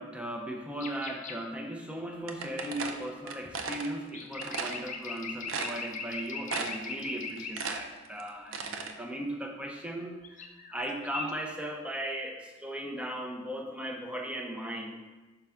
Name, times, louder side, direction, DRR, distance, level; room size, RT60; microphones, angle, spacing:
voice 1, 0.0-15.0, right 1 dB, 5° right, 1 dB, 0.7 m, -37 dB
sound 1, 0.8-1.4 4.0-7.7 10.2-10.8 11.0-11.3, left 4 dB, 40° left, 0.5 m, -40 dB
sound 2, 2.3-3.9 4.4-4.8 5.2-5.3 5.5-6.1 6.5-6.9 7.2-8.9, right 4 dB, 85° right, 0.6 m, -35 dB
5.6 x 5.5 x 3.5 m, 1.2 s
head